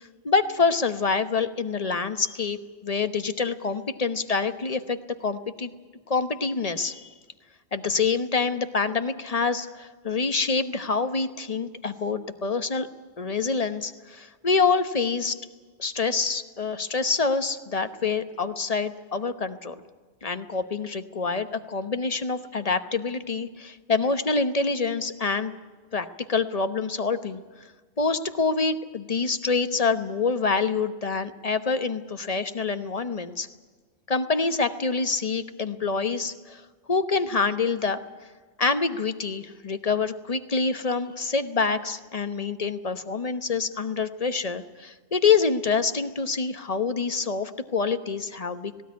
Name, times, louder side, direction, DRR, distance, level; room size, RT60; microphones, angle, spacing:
voice 1, 0.2-2.6 2.8-5.7 6.1-7.1 7.7-12.9 13.2-15.4 15.8-19.7 20.2-25.5 25.9-27.4 28.0-33.5 34.1-36.6 36.9-38.0 38.6-48.8, left 4 dB, 35° left, 10 dB, 1.1 m, -26 dB
18.0 x 18.0 x 9.6 m, 1.4 s
omnidirectional pair, 1.1 m